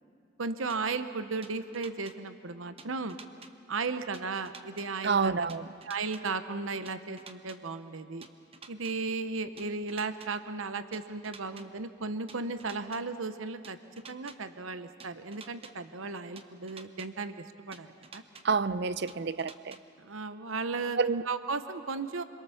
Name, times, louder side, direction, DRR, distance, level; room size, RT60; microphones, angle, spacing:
voice 1, 0.4-3.2 3.7-5.5 5.8-8.3 8.7-13.8 14.1-18.2 20.0-21.0 21.3-22.2, right 4 dB, 75° right, 11 dB, 0.9 m, -35 dB
sound 1, 0.7-0.8 1.4-2.1 2.8-3.5 4.1-4.9 5.5-6.2 6.9-7.6 8.2-8.9 9.6-10.3 10.9-11.6 12.3-13.0 13.6-14.4 15.0-15.7 16.4-17.1 17.7-18.4 19.1-19.8, right 4 dB, 30° right, 1.0 m, -49 dB
voice 2, 5.0-5.7 18.4-19.8 21.0-21.2, right 5 dB, 55° right, 16 dB, 0.6 m, -28 dB
27.5 x 22.0 x 7.0 m, 2.5 s
head